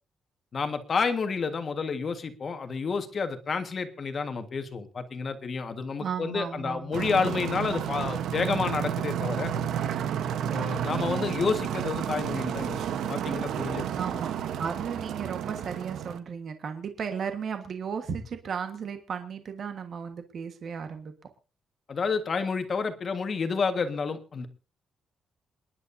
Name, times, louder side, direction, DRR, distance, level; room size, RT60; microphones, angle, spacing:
voice 1, 0.5-9.5 10.5-13.9 21.9-24.5, left 5 dB, 35° left, 8 dB, 1.6 m, -30 dB
voice 2, 6.0-7.3 13.9-21.1, right 6 dB, 45° right, 7 dB, 1.4 m, -35 dB
sound 1, 6.9-16.2, right 9 dB, 75° right, 1.0 m, -31 dB
28.0 x 10.5 x 2.7 m, 0.32 s
cardioid pair, 175°, 0 cm